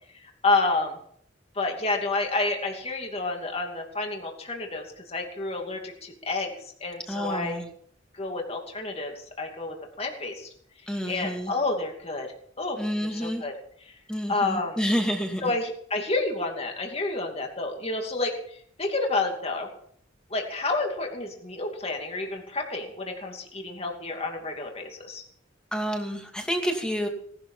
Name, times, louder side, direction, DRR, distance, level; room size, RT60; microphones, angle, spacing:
voice 1, 0.2-1.0 1.5-6.6 6.8-7.6 8.1-10.5 11.1-12.3 12.6-13.5 13.8-13.9 14.3-14.8 15.4-19.7 20.3-25.2, left 3 dB, 35° left, 2 dB, 2.7 m, -29 dB
voice 2, 7.1-7.6 10.9-11.5 12.8-13.4 14.1-15.5 25.7-27.1, equal, 5° left, 2 dB, 2.5 m, -29 dB
18.5 x 12.0 x 5.7 m, 0.63 s
head